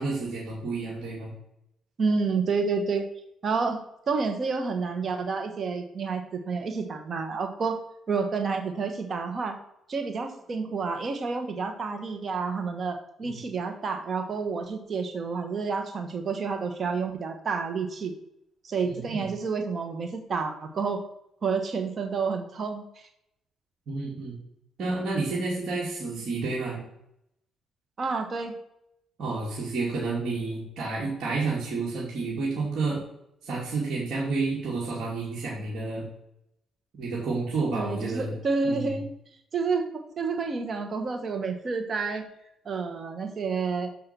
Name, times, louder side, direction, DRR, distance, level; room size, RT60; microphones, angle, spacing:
voice 1, 0.0-1.3 13.2-13.4 18.8-19.3 23.9-24.3 24.8-26.8 29.2-33.0 33.4-36.0 37.0-38.3 38.6-38.9, right 3 dB, 65° right, -6 dB, 2.6 m, -30 dB
voice 2, 2.0-3.1 3.4-7.8 8.1-9.6 9.9-18.1 18.6-21.0 21.4-23.1 28.0-28.5 37.7-39.1 39.5-42.3 42.6-43.9, right 4 dB, 45° right, 6 dB, 1.2 m, -29 dB
6.8 x 5.5 x 6.0 m, 0.78 s
cardioid pair, 90°, 0 cm